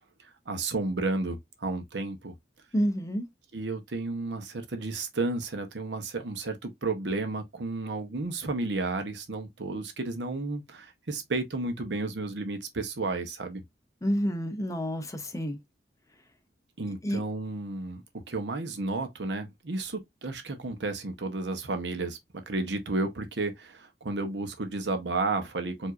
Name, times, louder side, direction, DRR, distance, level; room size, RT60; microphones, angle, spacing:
voice 1, 0.5-2.3 3.5-13.6 16.8-25.9, right 3 dB, 70° right, 0.9 m, -32 dB
voice 2, 2.7-3.2 14.0-15.6 17.0-17.2, equal, 20° left, 0.7 m, -29 dB
4.7 x 2.7 x 2.5 m
head